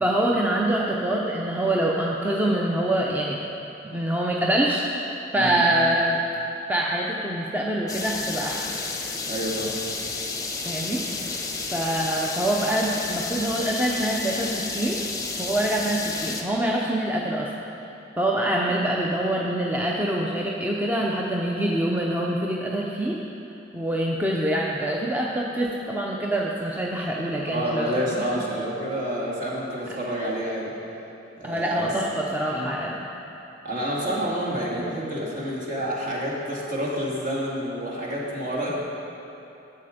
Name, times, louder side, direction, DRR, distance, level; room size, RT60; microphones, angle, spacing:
voice 1, 0.0-3.4 3.8-5.1 5.3-6.2 6.7-8.8 10.7-11.0 11.7-15.0 15.4-17.5 18.2-23.2 23.7-27.9 28.2-28.3 31.4-33.1, right 1 dB, 10° right, -3 dB, 0.6 m, -25 dB
sound 1, 7.9-16.4, left 3 dB, 20° left, 0.8 m, -31 dB
voice 2, 9.3-9.7 27.5-30.7 31.4-31.9 32.5-32.7 33.6-38.7, equal, 45° right, -5 dB, 2.1 m, -29 dB
11.0 x 7.6 x 5.1 m, 3.0 s
head